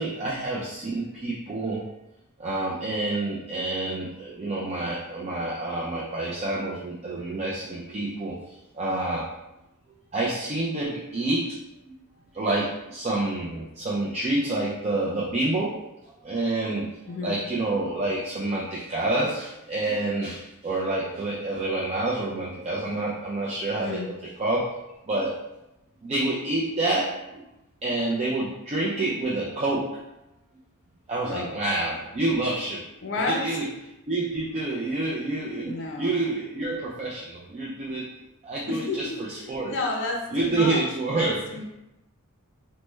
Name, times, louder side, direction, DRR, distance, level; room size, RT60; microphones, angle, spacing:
voice 1, 0.0-1.8 2.4-8.3 8.7-9.3 10.1-11.6 12.3-15.8 16.2-16.9 17.2-24.7 25.1-25.3 26.0-27.2 27.8-29.9 31.1-32.8 33.3-33.7 34.1-38.0 38.4-39.7 40.3-41.6, right 2 dB, 30° right, -6 dB, 0.4 m, -28 dB
voice 2, 17.1-17.4 23.8-24.1 31.3-31.6 33.0-33.5 35.6-36.2 38.7-40.9 41.1-41.6, left 3 dB, 55° left, 1 dB, 0.5 m, -31 dB
3.1 x 2.1 x 3.2 m, 0.91 s
head